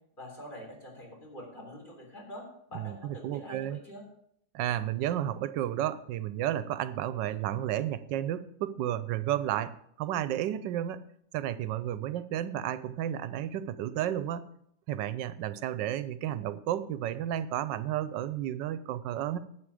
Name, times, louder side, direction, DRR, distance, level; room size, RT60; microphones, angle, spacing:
voice 1, 0.2-4.0, equal, 25° left, -1 dB, 3.7 m, -45 dB
voice 2, 2.7-3.8 4.5-11.0 11.3-14.5 14.9-19.4, right 11 dB, 90° right, 14 dB, 1.3 m, -32 dB
11.5 x 8.6 x 4.8 m, 0.70 s
omnidirectional pair, 1.9 m